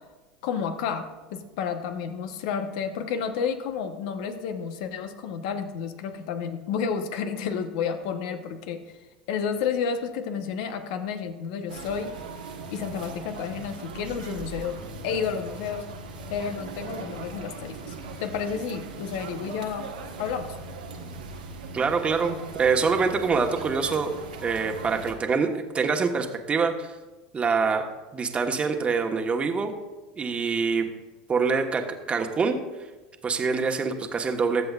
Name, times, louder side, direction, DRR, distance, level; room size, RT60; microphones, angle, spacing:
voice 1, 0.4-9.0 9.3-12.1 12.7-14.7 15.0-15.8 16.3-17.9 18.2-19.9 20.2-20.5, left 6 dB, 65° left, 8 dB, 1.1 m, -31 dB
sound 1, 11.7-25.1, right 4 dB, 90° right, 1.4 m, -39 dB
sound 2, 14.8-23.2, equal, ahead, 1.6 m, -53 dB
voice 2, 21.7-24.1 24.4-26.9 27.3-27.8 28.1-29.7 30.2-30.9 31.3-32.6 33.2-34.7, right 5 dB, 25° right, 4 dB, 1.3 m, -25 dB
22.0 x 7.7 x 2.5 m, 1.2 s
hypercardioid pair, 85°, 4 cm